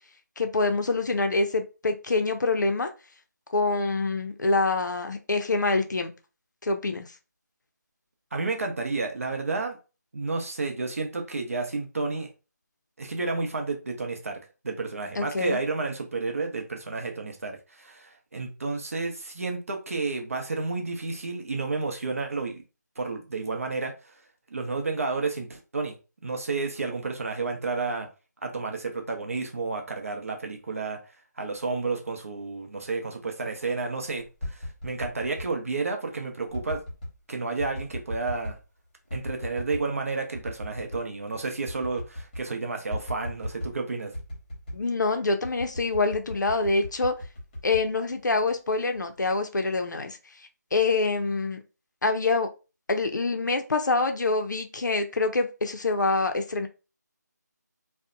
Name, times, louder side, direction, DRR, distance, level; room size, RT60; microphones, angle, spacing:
voice 1, 0.4-2.9 3.5-6.1 6.6-7.1 15.2-15.6 44.7-47.1 47.6-50.2 50.7-51.6 52.0-52.5 52.9-56.7, left 3 dB, 75° left, 6 dB, 0.5 m, -25 dB
voice 2, 8.3-9.8 10.1-12.3 13.0-14.4 14.6-22.6 23.0-23.9 24.5-25.9 26.2-28.1 28.4-31.0 31.4-36.8 37.3-38.6 39.1-44.1, right 3 dB, 50° right, 3 dB, 0.6 m, -31 dB
sound 1, 34.2-35.5 36.5-37.2 37.6-38.6 39.1-39.9 40.3-41.1 41.3-41.4 41.7-42.5 42.9-43.8 44.1-44.9 45.4-48.5 48.9-49.4, left 1 dB, 25° left, 0.9 m, -37 dB
2.6 x 2.1 x 2.4 m, 0.31 s
figure-of-eight pair, 170°, 10 cm